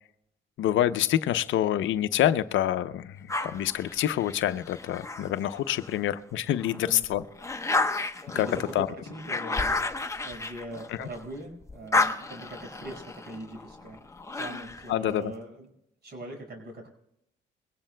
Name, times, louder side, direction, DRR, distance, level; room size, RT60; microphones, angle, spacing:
voice 1, 0.6-7.2 8.4-8.5 8.7-8.9 11.0-11.1 14.9-15.3, left 12 dB, 75° left, 12 dB, 0.6 m, -26 dB
sound 1, 3.3-6.0 6.5-11.3 11.6-14.9, left 3 dB, 15° left, 0.9 m, -32 dB
voice 2, 6.7-7.0 8.1-14.0 14.3-15.7 16.0-16.9, right 1 dB, 55° right, 2 dB, 5.4 m, -41 dB
21.5 x 17.5 x 2.2 m, 0.81 s
cardioid pair, 90°, 20 cm